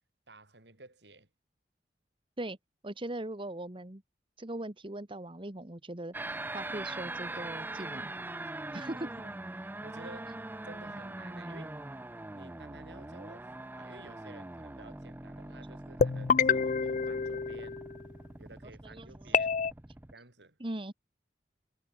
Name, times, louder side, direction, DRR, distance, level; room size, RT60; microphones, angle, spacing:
voice 1, 0.3-1.3 7.7-7.9 8.4-8.5 8.9-11.8 12.3-17.8 18.4-19.7 20.1-20.6, right 2 dB, 80° right, 6.2 m, -53 dB
voice 2, 2.8-4.0 4.4-8.1 8.7-8.9 18.8-19.4 20.6-20.9, right 1 dB, 30° right, 1.5 m, -40 dB
sound 1, 6.1-20.1, right 2 dB, 10° right, 0.5 m, -42 dB
sound 2, 16.0-18.1 19.3-19.7, left 6 dB, 45° left, 0.4 m, -28 dB
head